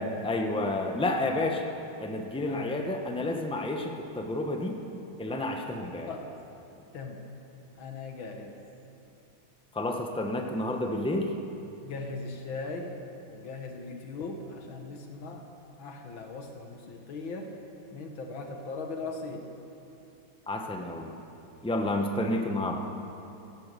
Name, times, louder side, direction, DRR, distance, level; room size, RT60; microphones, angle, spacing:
voice 1, 0.0-1.7 2.0-4.8 5.2-6.1 9.7-11.3 20.5-21.1 21.6-22.8, left 1 dB, 10° left, 3 dB, 0.3 m, -30 dB
voice 2, 6.9-7.2 7.8-8.5 11.8-13.0 13.3-15.5 15.8-17.5 17.9-19.5 22.1-22.2, left 3 dB, 75° left, 3 dB, 2.1 m, -39 dB
16.0 x 11.5 x 6.8 m, 2.8 s
omnidirectional pair, 2.2 m